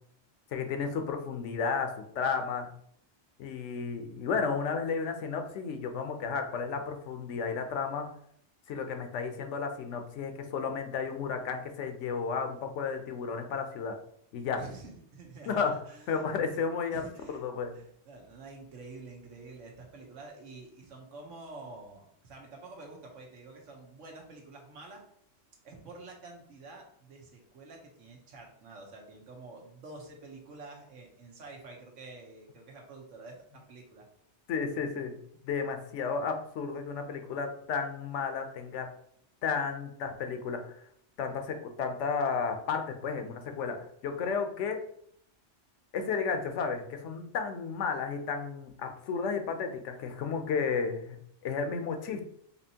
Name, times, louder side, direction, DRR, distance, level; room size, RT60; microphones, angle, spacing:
voice 1, 0.5-2.7 3.4-8.1 8.7-14.0 14.3-14.6 15.5-15.8 16.1-17.0 17.3-17.7 34.5-35.2 35.4-38.9 39.4-40.8 41.2-44.8 45.9-51.2 51.4-52.2, left 5 dB, 75° left, 6 dB, 0.9 m, -33 dB
voice 2, 14.6-17.4 17.7-25.0 25.6-34.1, right 3 dB, 90° right, 1 dB, 1.3 m, -48 dB
4.3 x 2.9 x 2.8 m, 0.67 s
omnidirectional pair, 1.2 m